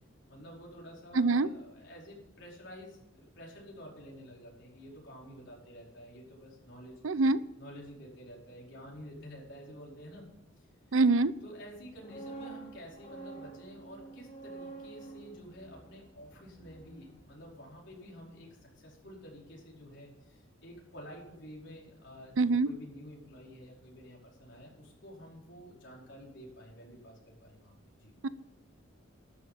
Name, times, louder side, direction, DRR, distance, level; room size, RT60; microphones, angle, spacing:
voice 1, 0.3-7.0 7.6-10.3 10.6-11.0 11.4-27.7 28.0-28.1, equal, 65° left, -3 dB, 4.9 m, -50 dB
voice 2, 1.1-1.5 7.0-7.4 10.9-11.3 22.4-22.7 28.2-28.3, right 3 dB, 90° right, 16 dB, 0.6 m, -24 dB
sound 1, 11.8-17.7 18.0-18.2, right 3 dB, 30° left, 3.6 m, -48 dB
12.5 x 7.0 x 8.9 m, 0.84 s
head